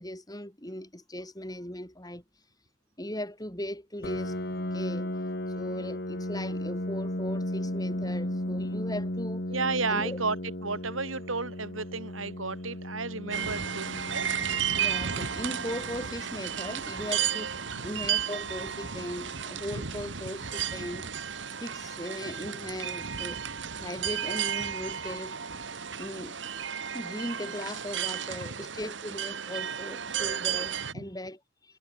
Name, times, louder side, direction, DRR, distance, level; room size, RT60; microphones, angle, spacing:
voice 1, 0.0-2.2 3.0-4.3 4.7-5.1 5.6-9.4 9.9-10.2 13.2-13.6 14.7-17.5 17.8-21.1 21.6-23.4 23.8-25.4 26.0-26.4 26.9-31.8, left 1 dB, 20° left, 6.7 m, -38 dB
Piano, 4.0-19.4, left 1 dB, 50° left, 2.8 m, -36 dB
voice 2, 9.5-10.4 10.6-14.3 17.7-17.9 28.4-28.5, right 4 dB, 85° right, 6.0 m, -32 dB
sound 1, 13.3-30.9, right 8 dB, 65° right, 1.6 m, -33 dB
head